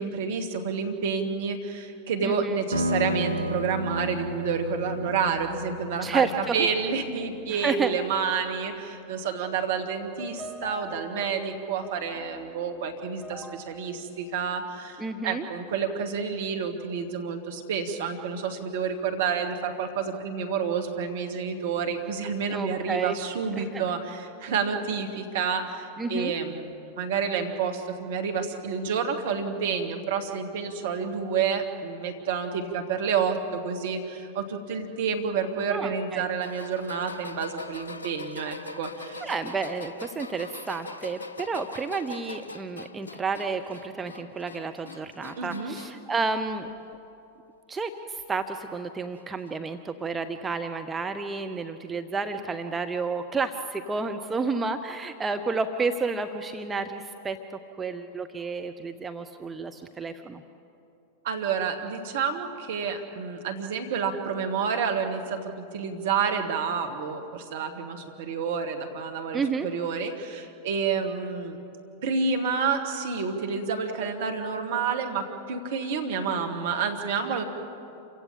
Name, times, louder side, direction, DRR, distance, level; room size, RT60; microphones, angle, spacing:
voice 1, 0.0-39.2 45.4-45.8 61.2-71.6 72.0-77.4, right 6 dB, 55° right, 6 dB, 2.1 m, -29 dB
voice 2, 2.2-2.6 6.0-6.7 7.5-7.9 15.0-15.5 22.5-23.2 23.6-23.8 26.0-26.3 35.7-36.3 39.2-46.7 47.7-57.4 57.8-60.4 69.3-69.7, right 4 dB, 15° right, 7 dB, 0.8 m, -31 dB
sound 1, 2.7-7.8, equal, 85° right, 0.6 m, -32 dB
sound 2, 10.0-15.3, right 2 dB, 5° left, 1.1 m, -45 dB
sound 3, 36.4-46.1 46.5-47.1 48.2-48.3 49.4-49.5, left 2 dB, 75° left, 0.8 m, -42 dB
27.5 x 16.0 x 8.7 m, 2.8 s
figure-of-eight pair, 90°, 0 cm